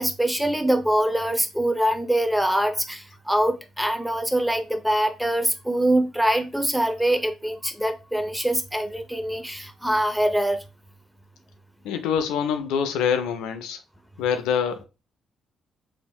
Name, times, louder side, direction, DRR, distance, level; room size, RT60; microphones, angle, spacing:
voice 1, 0.0-10.6, right 1 dB, ahead, 0.6 m, -24 dB
voice 2, 11.8-13.8 14.2-14.8, left 7 dB, 80° left, 0.4 m, -25 dB
3.4 x 2.7 x 2.2 m
hypercardioid pair, 45°, 0 cm